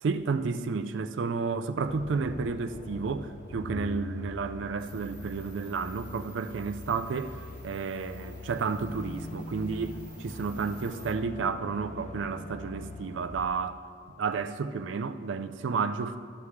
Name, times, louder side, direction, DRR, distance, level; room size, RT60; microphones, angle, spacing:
voice 1, 0.0-13.8 14.2-16.2, right 5 dB, 80° right, 11 dB, 0.4 m, -31 dB
sound 1, 1.9-13.5, left 2 dB, 40° left, 0.5 m, -42 dB
sound 2, 4.8-11.1, right 1 dB, 10° right, 1.0 m, -53 dB
11.5 x 7.1 x 3.2 m, 2.1 s
head